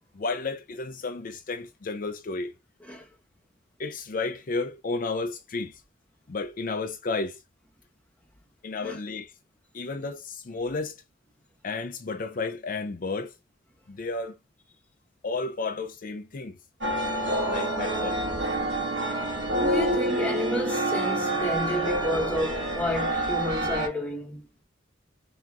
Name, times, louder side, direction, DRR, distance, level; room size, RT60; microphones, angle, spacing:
voice 1, 0.1-2.5 3.8-5.8 6.3-7.4 8.6-9.3 9.7-11.0 11.6-13.3 13.9-14.4 15.2-16.6 17.5-18.2, left 3 dB, 45° left, 0.5 m, -32 dB
sound 1, 16.8-23.9, right 1 dB, 70° right, 1.5 m, -27 dB
voice 2, 19.5-24.4, equal, 10° left, 1.0 m, -30 dB
5.8 x 2.9 x 2.4 m
head